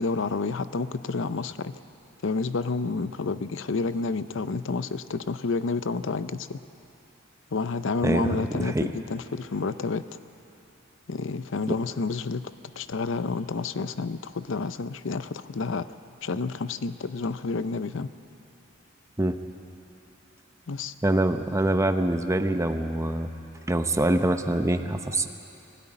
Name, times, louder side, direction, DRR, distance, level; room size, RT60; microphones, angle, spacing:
voice 1, 0.0-1.8 2.2-6.6 7.5-10.0 11.1-12.5 12.8-15.9 16.2-18.1 20.7-20.9, left 4 dB, 65° left, 13 dB, 0.6 m, -29 dB
voice 2, 8.0-8.9 11.7-11.8 19.2-19.4 21.0-23.3 23.7-25.3, right 1 dB, 15° right, 8 dB, 0.7 m, -25 dB
21.0 x 12.5 x 10.0 m, 2.9 s
head